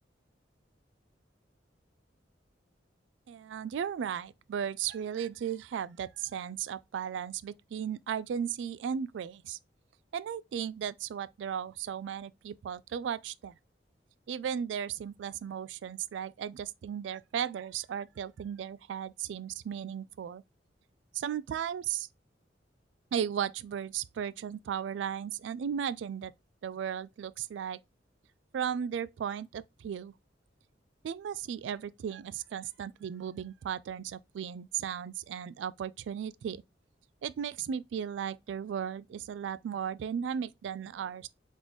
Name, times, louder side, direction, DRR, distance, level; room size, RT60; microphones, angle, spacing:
voice 1, 3.3-9.6 10.1-13.6 14.3-20.4 21.1-22.1 23.1-26.3 26.6-27.8 28.5-30.1 31.0-36.6 37.2-41.3, right 8 dB, 75° right, 0.3 m, -36 dB
4.0 x 3.7 x 2.9 m
head